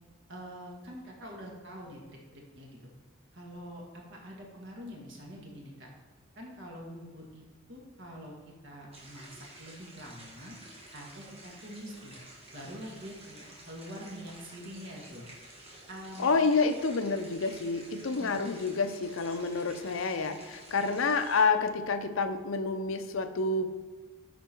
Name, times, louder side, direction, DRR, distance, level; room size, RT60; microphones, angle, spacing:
voice 1, 0.3-2.9 3.3-5.9 6.4-7.4 7.7-10.6 10.9-12.2 12.5-15.2 15.9-16.3 18.2-18.4, equal, 55° right, -1 dB, 1.9 m, -45 dB
sound 1, 8.9-21.4, right 1 dB, 25° right, 1.7 m, -51 dB
voice 2, 16.2-23.7, left 4 dB, 70° left, 9 dB, 0.6 m, -28 dB
10.5 x 4.5 x 4.5 m, 1.3 s
head